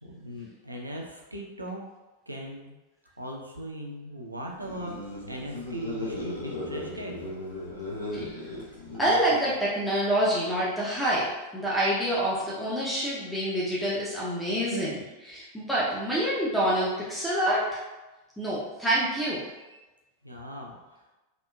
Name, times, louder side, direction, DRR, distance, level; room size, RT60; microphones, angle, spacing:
voice 1, 0.0-1.8 2.3-2.7 3.2-5.0 5.3-7.2 19.6-19.8 20.2-21.0, equal, 85° right, -1 dB, 0.4 m, -39 dB
sound 1, 4.5-9.6, left 1 dB, 80° left, 0.6 m, -37 dB
voice 2, 9.0-17.8 18.4-19.4, right 1 dB, ahead, -7 dB, 0.5 m, -27 dB
2.8 x 2.3 x 2.2 m, 1.1 s
figure-of-eight pair, 90°, 0 cm